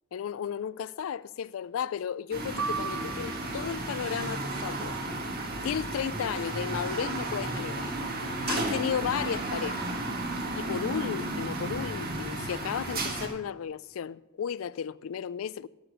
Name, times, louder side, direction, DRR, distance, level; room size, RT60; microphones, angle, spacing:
voice 1, 0.1-4.9 5.3-7.9 8.2-10.0 10.6-15.7, left 8 dB, 70° left, 0.3 m, -34 dB
sound 1, 2.3-13.3, right 2 dB, 45° right, 1.7 m, -33 dB
sound 2, 2.6-3.9, right 5 dB, 90° right, 0.9 m, -35 dB
12.0 x 6.7 x 6.7 m
head